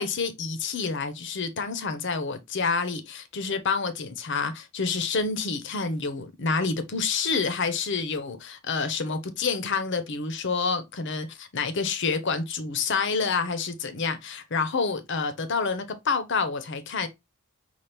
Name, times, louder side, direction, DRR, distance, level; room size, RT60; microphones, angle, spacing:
voice 1, 0.0-17.1, left 4 dB, 55° left, 0.7 m, -28 dB
5.8 x 2.4 x 3.3 m
head